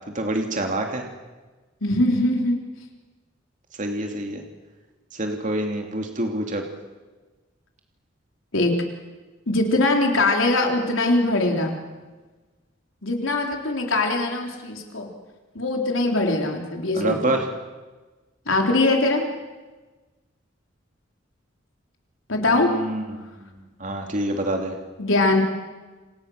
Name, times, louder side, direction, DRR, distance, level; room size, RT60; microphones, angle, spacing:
voice 1, 0.1-1.0 3.8-4.4 5.1-6.6 16.9-17.5 22.5-23.5 23.8-24.7, right 1 dB, 40° right, 3 dB, 2.7 m, -27 dB
voice 2, 1.8-2.6 8.5-8.8 9.5-11.7 13.0-15.1 15.5-17.2 18.5-19.2 22.3-22.7 25.0-25.4, left 2 dB, 80° left, 2 dB, 3.9 m, -21 dB
28.5 x 26.5 x 6.6 m, 1.3 s
head